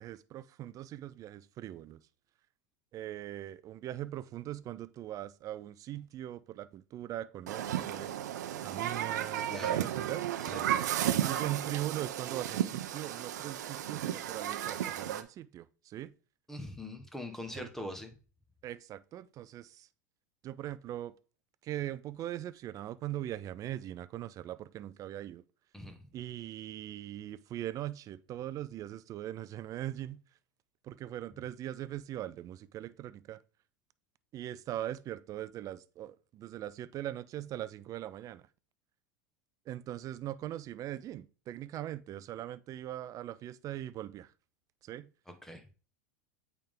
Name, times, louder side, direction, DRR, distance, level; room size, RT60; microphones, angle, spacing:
voice 1, 0.0-2.0 2.9-8.1 8.6-10.2 11.2-16.1 17.6-17.7 18.6-19.9 20.4-21.1 21.6-25.4 26.1-30.2 30.8-33.4 34.3-38.4 39.7-44.3 44.8-45.1, right 13 dB, 40° right, 0.5 m, -40 dB
Human group actions, 7.5-15.2, right 11 dB, 75° right, 0.6 m, -34 dB
voice 2, 9.5-9.9 10.4-10.6 16.5-18.1 25.7-26.0 45.4-45.7, left 1 dB, 5° left, 1.2 m, -42 dB
8.5 x 3.6 x 3.7 m
hypercardioid pair, 100°, 9 cm